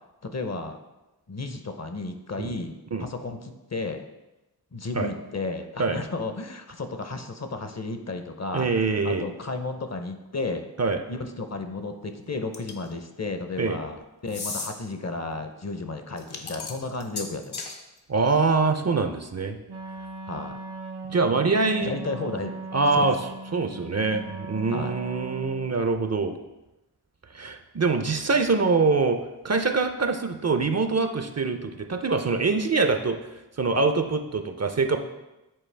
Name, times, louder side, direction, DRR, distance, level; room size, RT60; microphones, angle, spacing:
voice 1, 0.2-0.8 1.3-4.1 4.7-10.7 11.1-17.6 20.3-20.6 21.8-22.5 22.9-23.1 24.1-24.2 24.7-24.9, left 3 dB, 40° left, 7 dB, 0.6 m, -33 dB
voice 2, 8.5-9.3 10.8-11.0 13.6-13.8 18.1-19.6 21.1-21.9 22.7-23.2 23.5-26.4 27.3-33.2 33.6-35.0, right 4 dB, 40° right, 7 dB, 0.5 m, -24 dB
sound 1, 12.5-12.9 14.3-14.7 16.2-17.8, left 4 dB, 70° left, 0.8 m, -35 dB
Wind instrument woodwind instrument, 19.7-25.8, right 3 dB, 90° right, 0.8 m, -39 dB
7.5 x 4.3 x 3.3 m, 1.0 s
wide cardioid pair, 45°, 39 cm